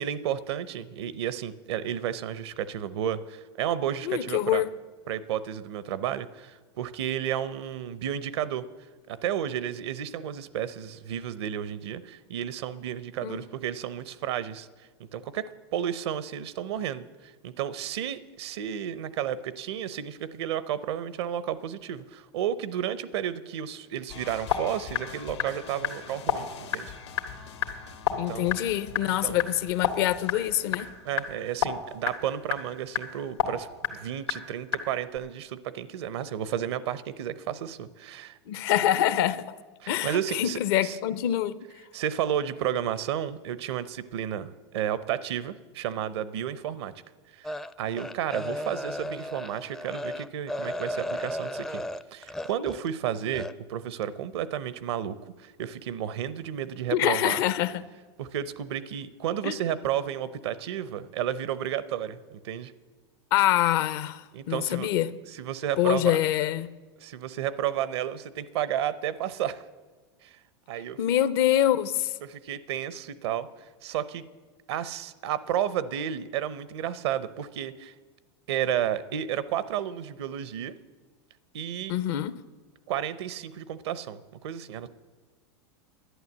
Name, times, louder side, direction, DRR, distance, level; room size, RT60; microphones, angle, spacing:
voice 1, 0.0-4.6 5.1-8.6 9.1-14.7 15.1-15.4 15.7-17.1 17.4-26.9 28.1-28.6 29.2-29.4 31.0-38.4 39.8-41.0 41.9-46.9 47.3-51.8 52.1-57.4 58.2-62.7 64.3-64.9 65.3-66.2 67.0-69.6 70.2-70.4 70.7-71.0 72.2-73.5 73.8-74.2 74.7-77.9 78.5-80.7 81.5-81.9 82.9-84.9, right 10 dB, 70° right, 0.7 m, -32 dB
voice 2, 4.0-4.7 13.2-13.4 28.2-30.9 38.5-39.6 39.9-41.6 56.9-57.8 59.4-59.6 63.3-65.1 65.8-66.7 71.0-72.2 81.9-82.3, left 12 dB, 60° left, 0.7 m, -25 dB
sound 1, 24.1-33.4 33.7-33.9 34.3-34.4 34.6-34.8 35.1-35.2, left 8 dB, 85° left, 1.6 m, -32 dB
sound 2, 47.4-52.9 53.3-53.5, left 1 dB, 5° left, 0.4 m, -34 dB
11.5 x 9.2 x 7.3 m
hypercardioid pair, 105°, 14 cm